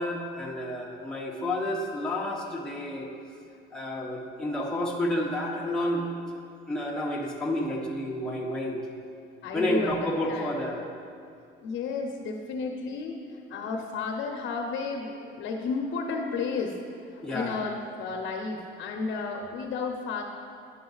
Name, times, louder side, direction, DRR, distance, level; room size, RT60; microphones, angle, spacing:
voice 1, 0.0-3.1 3.7-6.1 6.7-8.8 9.5-10.8 17.2-17.6, left 1 dB, 5° left, -4 dB, 0.7 m, -30 dB
voice 2, 9.4-10.5 11.6-20.2, left 4 dB, 70° left, 2 dB, 0.7 m, -33 dB
9.8 x 5.9 x 3.9 m, 2.4 s
cardioid pair, 160°, 20 cm